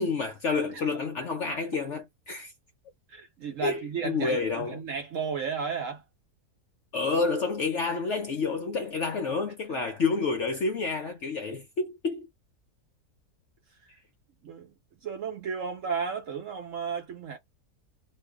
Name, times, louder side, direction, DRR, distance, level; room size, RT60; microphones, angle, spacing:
voice 1, 0.0-2.5 3.6-4.8 6.9-12.3, left 4 dB, 65° left, 0.7 m, -29 dB
voice 2, 3.1-6.0 9.7-9.8 14.4-14.7 15.0-17.4, right 6 dB, 60° right, 0.9 m, -33 dB
2.6 x 2.5 x 3.4 m
omnidirectional pair, 1.8 m